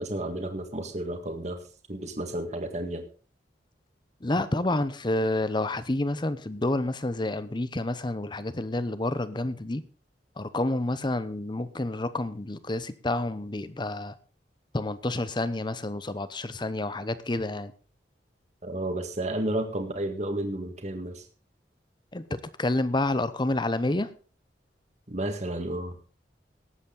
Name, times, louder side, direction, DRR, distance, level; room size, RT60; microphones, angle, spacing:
voice 1, 0.0-1.6 1.9-3.0 18.6-21.3 25.1-26.0, right 1 dB, 40° right, 6 dB, 1.8 m, -32 dB
voice 2, 4.2-9.8 10.4-14.1 14.7-17.7 22.1-24.1, left 2 dB, 25° left, 14 dB, 0.8 m, -29 dB
18.5 x 8.2 x 3.9 m, 0.38 s
head